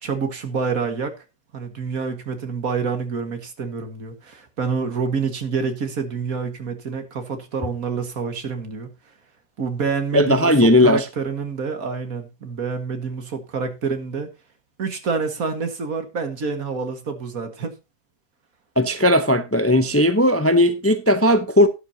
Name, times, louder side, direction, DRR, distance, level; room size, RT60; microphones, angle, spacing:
voice 1, 0.0-1.2 1.5-8.9 9.6-14.3 14.8-17.7, right 5 dB, 70° right, 2.1 m, -27 dB
voice 2, 10.1-11.0 18.8-21.7, left 1 dB, 15° left, 0.6 m, -17 dB
12.5 x 11.0 x 2.8 m
omnidirectional pair, 1.5 m